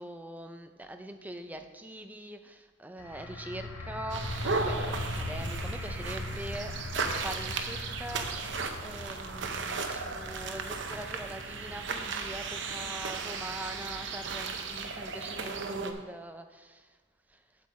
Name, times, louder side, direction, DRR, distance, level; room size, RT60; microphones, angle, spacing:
voice 1, 0.0-17.0 17.3-17.4, right 1 dB, 10° right, 6 dB, 0.5 m, -43 dB
sound 1, 3.0-14.5, left 1 dB, 90° left, 1.2 m, -40 dB
sound 2, 4.1-15.9, right 4 dB, 55° right, 0.7 m, -35 dB
8.2 x 7.7 x 4.2 m, 1.3 s
head